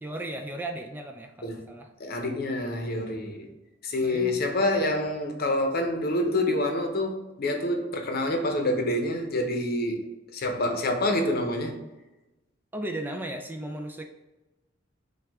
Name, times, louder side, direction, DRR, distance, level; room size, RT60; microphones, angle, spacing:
voice 1, 0.0-1.9 3.3-3.5 4.0-4.5 12.7-14.0, right 1 dB, 10° right, 4 dB, 0.3 m, -36 dB
voice 2, 2.0-3.5 3.8-10.1 10.3-11.8, left 1 dB, 50° left, 4 dB, 0.7 m, -27 dB
6.1 x 2.3 x 3.5 m, 1.0 s
head